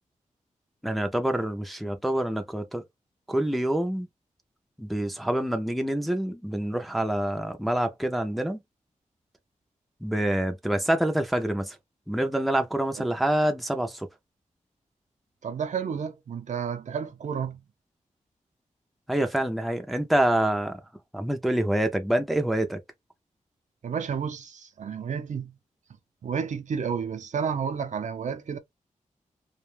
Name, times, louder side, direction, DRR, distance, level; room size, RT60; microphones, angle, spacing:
voice 1, 0.8-2.8 3.3-4.1 4.8-8.6 10.0-11.8 12.1-14.1 19.1-20.8 21.1-22.8, right 1 dB, ahead, 0.4 m, -26 dB
voice 2, 15.4-17.6 23.8-25.6 26.2-28.6, right 6 dB, 65° right, 0.5 m, -31 dB
2.4 x 2.2 x 3.2 m
wide cardioid pair, 130°, 13 cm